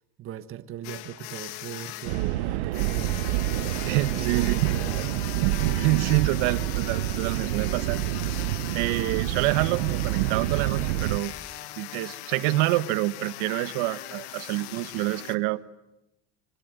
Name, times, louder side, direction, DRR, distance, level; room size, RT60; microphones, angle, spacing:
voice 1, 0.0-3.2 4.2-5.1, right 11 dB, 40° right, 10 dB, 1.5 m, -39 dB
sound 1, 0.8-15.3, left 14 dB, 85° left, 1.6 m, -39 dB
sound 2, 2.0-11.2, right 16 dB, 90° right, 1.1 m, -27 dB
voice 2, 3.9-4.5 5.7-8.0 8.7-11.3 11.8-15.6, right 19 dB, 70° right, 14 dB, 1.2 m, -27 dB
26.0 x 24.0 x 9.3 m, 0.92 s
cardioid pair, 135°, 32 cm